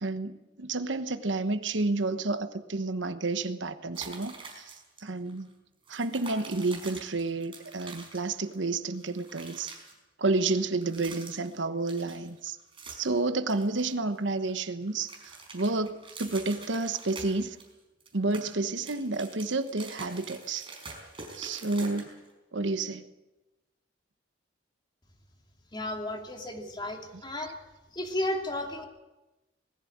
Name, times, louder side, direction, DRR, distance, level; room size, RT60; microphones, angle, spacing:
voice 1, 0.0-4.7 5.0-5.5 5.9-9.7 10.2-12.6 12.9-17.6 18.1-20.7 21.4-22.1 22.5-23.1, right 3 dB, 80° right, 11 dB, 1.1 m, -30 dB
sound 1, 3.9-5.0 5.3-5.4 5.8-8.6 8.9-9.9 10.7-11.6 11.9-13.2 13.5-14.5 14.8-17.7 18.0-22.3, right 4 dB, 30° right, 5.0 m, -46 dB
voice 2, 25.7-27.6 27.9-28.8, left 1 dB, 25° left, 3 dB, 2.5 m, -33 dB
20.0 x 15.0 x 8.7 m, 1.1 s
head